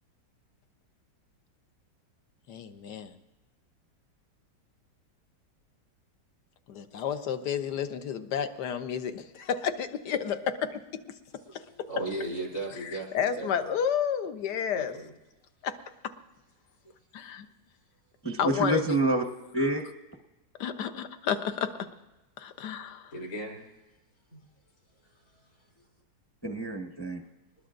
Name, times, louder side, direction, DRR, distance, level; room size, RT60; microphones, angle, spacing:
voice 1, 2.5-3.1 6.7-10.8 11.5-11.6 12.8-14.9 15.6-15.7 17.1-17.5 18.4-18.8 20.6-21.9 22.4-23.1, left 8 dB, 75° left, 8 dB, 1.5 m, -31 dB
voice 2, 11.5-13.1 13.4-13.7 14.7-15.1 23.1-23.6 24.3-24.4, right 2 dB, 55° left, 0 dB, 3.9 m, -36 dB
voice 3, 18.2-19.2 19.5-19.8 26.4-27.2, right 2 dB, 10° left, 3 dB, 0.8 m, -27 dB
25.0 x 20.0 x 2.6 m, 1.1 s
omnidirectional pair, 1.9 m